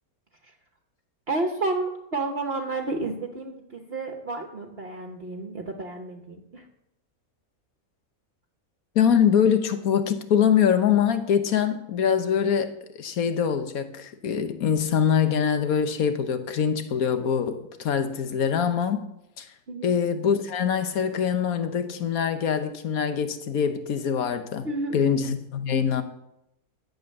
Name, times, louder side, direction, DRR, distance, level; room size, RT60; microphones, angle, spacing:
voice 1, 1.3-6.6 19.7-19.9 24.6-25.0, right 2 dB, 45° right, 1.3 m, -31 dB
voice 2, 8.9-19.1 19.4-19.5 19.8-24.7 24.9-26.0, left 7 dB, 75° left, 1.4 m, -24 dB
12.0 x 7.9 x 6.6 m
omnidirectional pair, 1.6 m